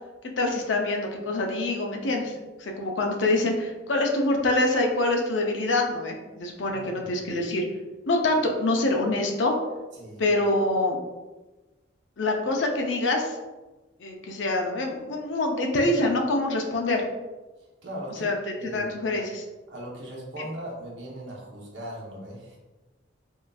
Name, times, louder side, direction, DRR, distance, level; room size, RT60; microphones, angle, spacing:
voice 1, 0.4-2.3 2.6-7.6 8.1-9.5 10.2-11.0 12.2-13.4 14.0-17.0 18.2-18.3 18.6-19.4, left 2 dB, 70° left, 2 dB, 0.5 m, -25 dB
voice 2, 6.7-7.1 9.9-10.2 17.8-18.3 18.6-18.9 19.7-22.6, right 1 dB, 70° right, -4 dB, 0.9 m, -39 dB
3.7 x 2.5 x 2.3 m, 1.2 s
head